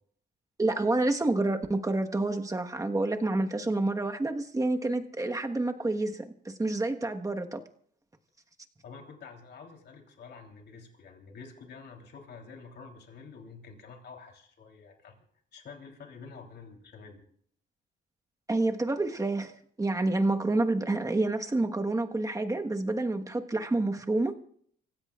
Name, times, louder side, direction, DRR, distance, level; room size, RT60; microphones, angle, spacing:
voice 1, 0.6-7.6 18.5-24.3, right 2 dB, 15° right, 1.3 m, -28 dB
voice 2, 8.8-15.1 15.5-17.2, left 5 dB, 60° left, 3.5 m, -48 dB
27.5 x 16.0 x 2.4 m
cardioid pair, 90°, 20 cm